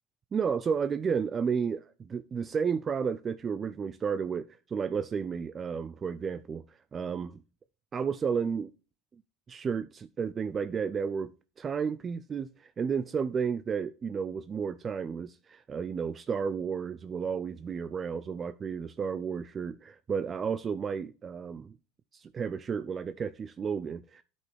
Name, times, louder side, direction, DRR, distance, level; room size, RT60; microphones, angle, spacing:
voice 1, 0.3-7.4 7.9-8.7 9.5-21.8 22.1-24.2, right 6 dB, 25° right, 0.3 m, -32 dB
9.4 x 5.2 x 3.4 m
supercardioid pair, 130°, 0 cm